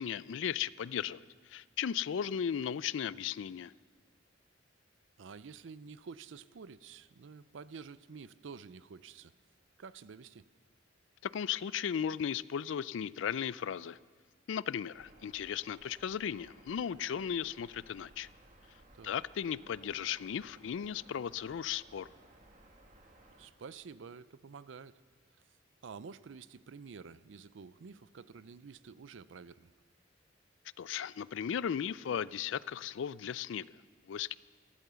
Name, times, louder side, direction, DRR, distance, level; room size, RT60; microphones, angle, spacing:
voice 1, 0.0-3.7 11.2-14.0 14.5-18.3 19.0-22.1 30.8-33.7 34.1-34.4, left 8 dB, 75° left, 19 dB, 0.4 m, -36 dB
voice 2, 5.2-9.3 9.8-10.5 18.9-19.2 23.4-25.0 25.8-29.7, right 5 dB, 75° right, 17 dB, 0.5 m, -49 dB
sound 1, 14.9-23.5, right 1 dB, 40° right, 1.5 m, -60 dB
14.5 x 13.5 x 6.9 m, 1.5 s
head